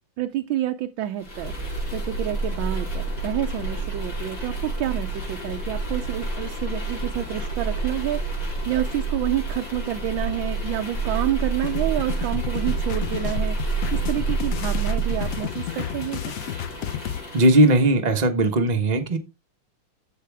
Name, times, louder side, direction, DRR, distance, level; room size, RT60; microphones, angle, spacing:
voice 1, 0.2-8.2 8.7-13.6 13.9-16.2, right 12 dB, 75° right, 1.4 m, -28 dB
sound 1, 1.2-17.9, right 3 dB, 65° left, 5.6 m, -29 dB
sound 2, 11.6-17.2, left 10 dB, 80° left, 0.7 m, -32 dB
voice 2, 17.3-19.2, right 1 dB, 30° right, 0.8 m, -18 dB
14.0 x 4.8 x 3.4 m
omnidirectional pair, 2.3 m